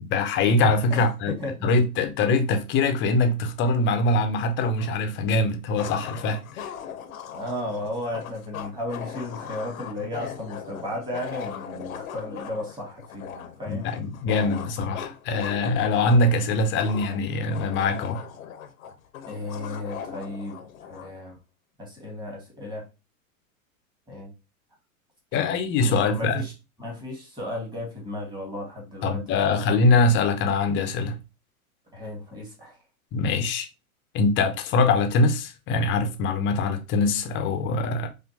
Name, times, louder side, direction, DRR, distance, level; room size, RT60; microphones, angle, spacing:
voice 1, 0.1-1.4 1.6-6.7 13.6-18.2 25.3-26.4 29.0-31.2 33.1-33.7 34.1-38.1, left 3 dB, 30° left, 0.6 m, -23 dB
voice 2, 1.4-1.7 7.3-13.9 19.3-21.4 21.8-22.9 24.1-24.3 25.3-26.5 26.8-29.5 31.9-32.8, left 1 dB, 10° right, 1.6 m, -34 dB
sound 1, 4.8-4.9 5.7-21.1, left 8 dB, 75° left, 0.8 m, -39 dB
4.2 x 2.5 x 2.8 m
hypercardioid pair, 105°, 42 cm